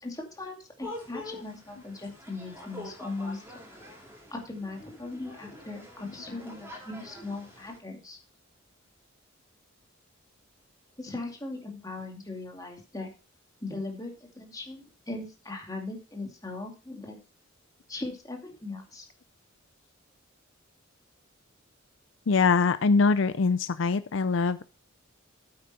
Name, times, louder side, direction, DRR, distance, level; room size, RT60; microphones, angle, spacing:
voice 1, 0.0-3.9 4.3-8.2 11.0-13.1 13.6-17.2 17.9-19.1, left 2 dB, 20° left, 1 dB, 2.3 m, -39 dB
sound 1, 0.8-7.8, left 1 dB, 10° right, 3.9 m, -45 dB
voice 2, 22.3-24.6, left 4 dB, 65° left, 13 dB, 0.5 m, -23 dB
8.8 x 8.8 x 4.2 m, 0.32 s
head